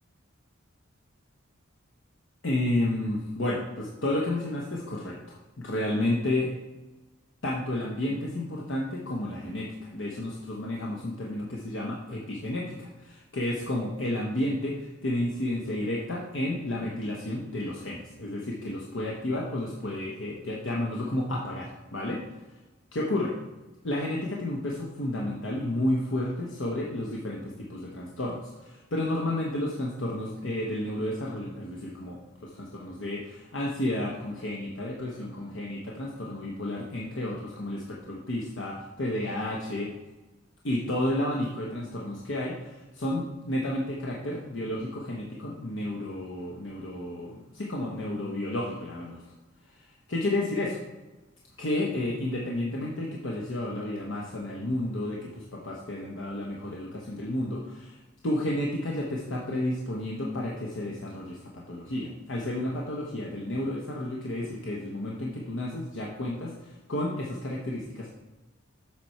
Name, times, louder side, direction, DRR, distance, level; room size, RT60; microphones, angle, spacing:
voice 1, 2.4-6.5 7.4-22.2 22.9-23.3 23.8-39.9 40.6-49.2 50.1-50.8 51.6-68.1, left 1 dB, 65° left, -2 dB, 0.9 m, -31 dB
7.5 x 6.0 x 4.3 m, 1.1 s
head